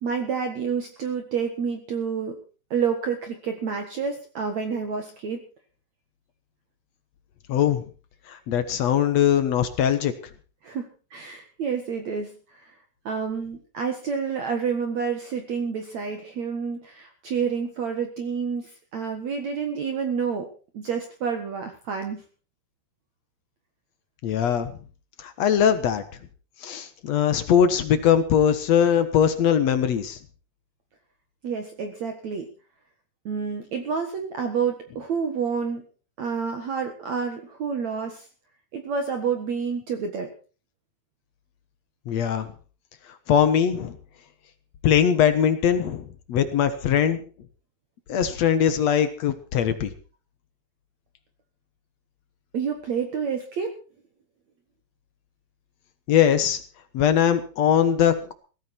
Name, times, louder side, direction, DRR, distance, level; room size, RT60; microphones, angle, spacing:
voice 1, 0.0-2.4 2.7-5.4 10.6-12.7 13.1-20.5 20.7-22.2 31.4-32.5 33.3-35.8 36.2-38.3 38.7-40.3 52.5-53.7, right 6 dB, 55° right, 5 dB, 2.4 m, -29 dB
voice 2, 7.5-7.8 8.3-10.1 24.2-24.7 25.2-26.0 26.6-30.2 42.1-42.5 43.3-44.0 44.8-47.2 48.1-49.9 56.1-56.6 56.9-58.3, left 9 dB, 65° left, 10 dB, 1.7 m, -21 dB
17.0 x 14.5 x 4.5 m, 0.37 s
omnidirectional pair, 4.8 m